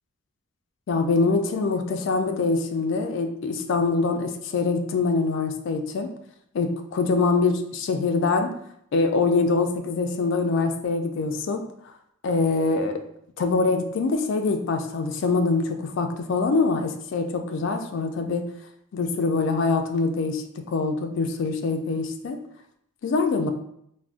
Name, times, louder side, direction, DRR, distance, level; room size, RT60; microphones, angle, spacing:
voice 1, 0.9-6.1 6.5-8.5 8.9-11.6 12.2-13.0 13.4-18.4 18.9-22.4 23.0-23.5, left 3 dB, 60° left, 5 dB, 0.3 m, -24 dB
3.5 x 2.0 x 2.4 m, 0.73 s
head